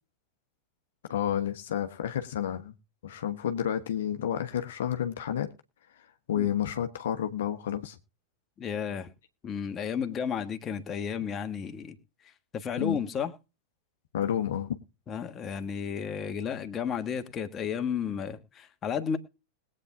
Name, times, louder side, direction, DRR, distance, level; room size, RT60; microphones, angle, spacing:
voice 1, 1.1-2.7 3.0-5.5 6.3-8.0 12.8-13.0 14.1-14.7, left 10 dB, 60° left, 1.1 m, -30 dB
voice 2, 8.6-9.1 9.4-12.0 12.5-13.3 15.1-19.2, left 7 dB, 25° left, 1.5 m, -32 dB
21.0 x 8.8 x 2.6 m
figure-of-eight pair, 90°, 0 cm